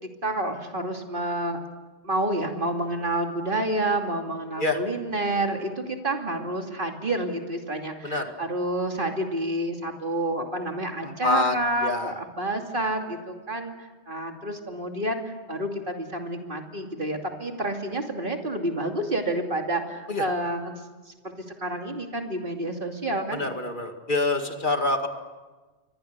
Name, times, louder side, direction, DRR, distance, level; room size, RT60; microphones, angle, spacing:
voice 1, 0.0-1.6 2.0-20.8 21.1-21.2 21.6-23.5, right 1 dB, 50° right, 3 dB, 2.9 m, -29 dB
voice 2, 11.0-11.6 11.8-12.1 20.1-20.3 23.3-25.1, left 2 dB, 50° left, 5 dB, 2.3 m, -26 dB
29.5 x 24.5 x 6.8 m, 1.3 s
omnidirectional pair, 1.1 m